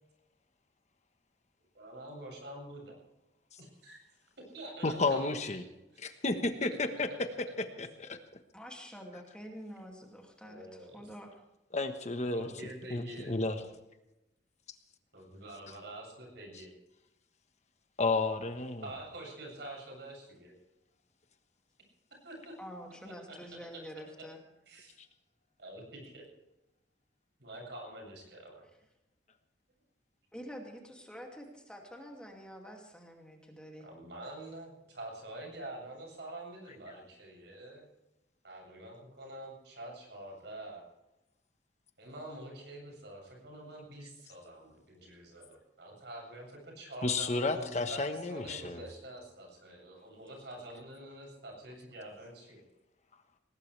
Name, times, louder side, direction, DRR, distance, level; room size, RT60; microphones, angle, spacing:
voice 1, 1.7-3.0 3.6-4.0 4.5-5.5 6.6-7.2 10.4-11.1 12.3-13.6 15.1-16.7 18.8-20.5 22.2-22.5 23.3-23.7 24.7-25.0 25.6-26.2 27.4-28.6 33.8-37.9 38.4-40.9 42.0-52.6, right 1 dB, 70° right, 0 dB, 7.8 m, -46 dB
voice 2, 4.8-5.6 6.0-7.1 7.8-8.2 11.7-12.5 12.9-13.6 18.0-18.9 36.9-37.0 47.0-48.8, left 3 dB, 40° left, 7 dB, 1.3 m, -32 dB
voice 3, 8.5-11.4 22.6-24.4 30.3-33.9, equal, 5° left, 1 dB, 2.5 m, -47 dB
20.0 x 19.5 x 3.4 m, 0.93 s
head